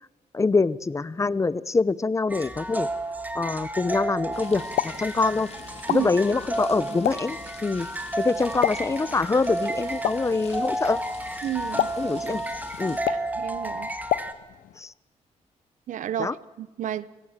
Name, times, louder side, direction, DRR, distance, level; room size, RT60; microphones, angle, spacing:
voice 1, 0.3-2.9 3.3-5.5 5.9-7.9 8.2-11.0 12.0-12.4 12.8-13.0 14.8-14.9 16.2-16.3, left 3 dB, 25° left, 0.7 m, -25 dB
sound 1, 2.3-14.3, right 1 dB, 10° right, 1.9 m, -32 dB
sound 2, 4.3-13.0, left 5 dB, 55° left, 3.0 m, -46 dB
Explosion, 4.5-14.8, left 13 dB, 90° left, 0.6 m, -33 dB
voice 2, 11.4-11.9 13.1-13.9 15.9-17.1, right 11 dB, 70° right, 0.9 m, -31 dB
29.0 x 17.5 x 7.5 m
cardioid pair, 95°, 13 cm